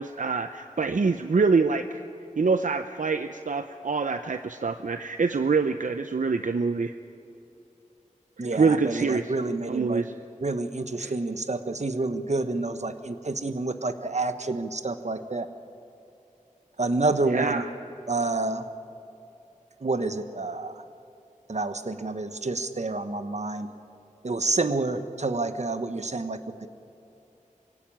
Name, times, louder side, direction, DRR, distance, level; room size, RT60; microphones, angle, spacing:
voice 1, 0.0-2.0 2.4-6.9 8.4-9.3 9.7-10.1 11.0-11.2 17.3-17.7, right 4 dB, 75° right, 9 dB, 0.6 m, -25 dB
voice 2, 8.4-10.0 10.4-15.5 16.8-17.6 18.1-18.6 19.8-20.7 21.5-23.7 24.2-26.4, right 3 dB, 60° right, 10 dB, 1.2 m, -28 dB
23.5 x 16.5 x 9.0 m, 2.8 s
wide cardioid pair, 65°, 14 cm